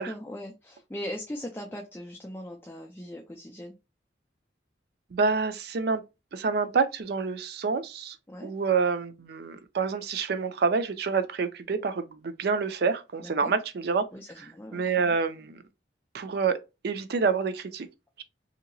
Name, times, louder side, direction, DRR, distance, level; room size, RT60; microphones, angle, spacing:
voice 1, 0.0-3.8 8.3-8.5 13.2-13.5 14.1-15.1, equal, 10° left, 0.5 m, -40 dB
voice 2, 5.1-6.0 6.3-8.2 8.4-14.0 14.4-15.6 16.1-16.6 16.8-17.9, right 5 dB, 60° right, 0.4 m, -27 dB
2.8 x 2.7 x 2.6 m
head